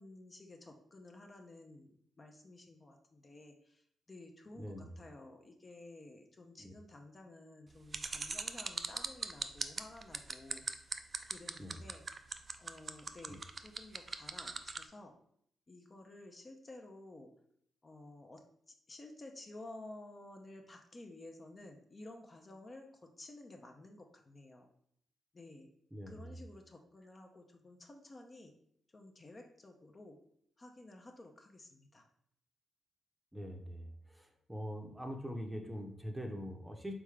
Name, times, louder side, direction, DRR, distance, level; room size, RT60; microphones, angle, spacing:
voice 1, 0.0-10.7 11.2-12.0 12.6-15.1 15.7-17.3 17.8-24.7 25.3-25.7 26.1-28.5 28.9-30.2 30.6-32.1, left 2 dB, 35° left, 3 dB, 0.6 m, -53 dB
voice 2, 4.6-4.9 6.6-6.7 11.6-11.8 13.3-13.4 25.9-26.4 33.3-36.9, equal, 10° right, 3 dB, 0.7 m, -43 dB
sound 1, 7.9-14.8, right 4 dB, 40° right, 0.3 m, -39 dB
3.7 x 3.5 x 3.2 m, 0.68 s
cardioid pair, 70°, 0 cm